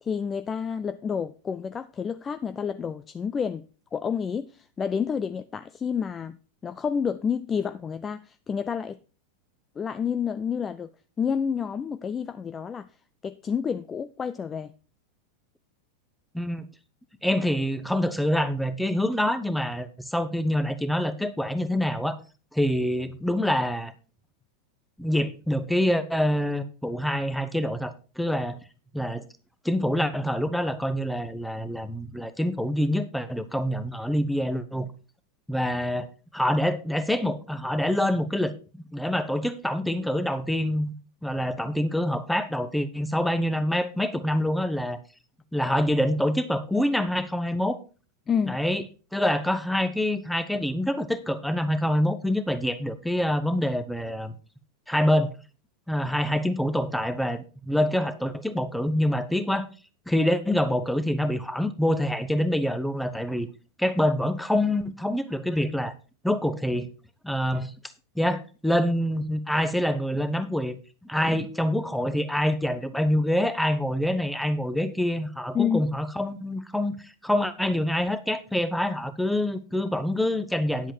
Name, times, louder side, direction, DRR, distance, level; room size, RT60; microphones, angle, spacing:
voice 1, 0.0-3.7 3.9-6.4 6.6-9.0 9.8-10.9 11.2-12.9 13.2-14.7 48.3-48.6 75.5-75.8, left 7 dB, 20° left, 0.4 m, -29 dB
voice 2, 16.3-16.6 17.2-22.2 22.5-23.9 25.0-28.6 28.9-29.2 29.6-34.9 35.5-36.1 36.3-38.5 38.9-40.9 41.2-45.0 45.5-47.8 48.5-48.8 49.1-54.3 54.9-55.3 55.9-59.7 60.1-63.5 63.8-65.9 66.2-66.9 67.2-67.7 68.1-70.8 71.1-80.9, left 1 dB, ahead, 1.1 m, -26 dB
10.0 x 8.0 x 4.6 m
figure-of-eight pair, 90°, 0 cm